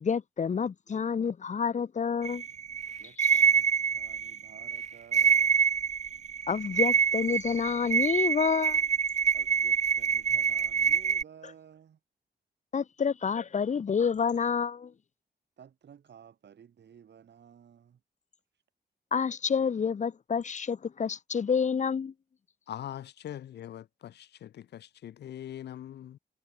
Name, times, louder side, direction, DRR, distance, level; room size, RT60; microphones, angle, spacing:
voice 1, 0.0-2.4 3.2-3.4 6.5-8.8 12.7-14.9 19.1-22.1, left 6 dB, 45° left, 0.7 m, -28 dB
sound 1, 2.2-11.2, right 7 dB, 40° right, 0.5 m, -26 dB
voice 2, 3.0-5.6 9.3-12.0 15.6-18.0 18.5-18.6, right 8 dB, 85° right, 4.0 m, -54 dB
voice 3, 22.7-26.2, left 11 dB, 75° left, 0.4 m, -42 dB
wide cardioid pair, 110°, 18 cm